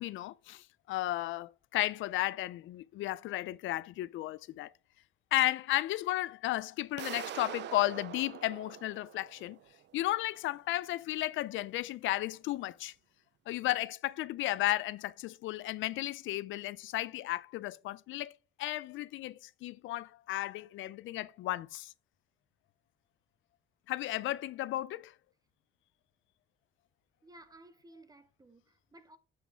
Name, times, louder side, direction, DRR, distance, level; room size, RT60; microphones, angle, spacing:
voice 1, 0.0-4.7 5.3-9.6 9.9-12.9 13.5-21.9 23.9-25.1, left 16 dB, 80° left, 0.4 m, -34 dB
sound 1, 7.0-9.8, right 12 dB, 60° right, 0.5 m, -44 dB
voice 2, 27.2-29.2, right 1 dB, 20° right, 0.8 m, -56 dB
7.3 x 6.0 x 3.4 m
cardioid pair, 90°, 20 cm